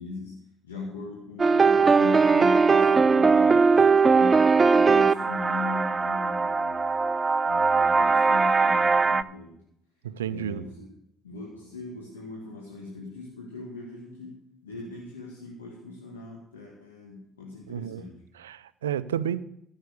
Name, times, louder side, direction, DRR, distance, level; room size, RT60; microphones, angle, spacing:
voice 1, 0.0-6.9 7.4-9.6 10.2-10.9 11.2-18.2, left 3 dB, 90° left, 2.0 m, -39 dB
sound 1, 1.4-9.2, right 4 dB, 30° right, 0.5 m, -20 dB
voice 2, 10.0-10.6 17.7-18.0 18.4-19.4, right 10 dB, 85° right, 0.5 m, -31 dB
13.5 x 7.2 x 6.6 m
hypercardioid pair, 55°, 0 cm